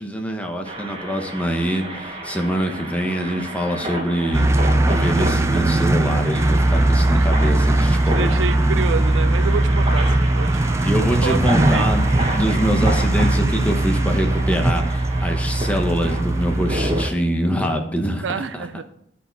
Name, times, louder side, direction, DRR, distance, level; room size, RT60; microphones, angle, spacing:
voice 1, 0.0-4.5 4.8-8.5 10.8-12.0 12.3-18.2 18.5-18.7, equal, 10° left, 1.0 m, -24 dB
sound 1, 0.6-17.1, right 1 dB, 30° right, 1.0 m, -31 dB
sound 2, 4.3-17.1, right 1 dB, 15° right, 0.3 m, -19 dB
voice 2, 7.1-7.6 8.0-10.9 11.2-11.4 11.7-11.9 18.2-18.8, right 5 dB, 85° right, 0.4 m, -28 dB
12.5 x 4.3 x 4.1 m
head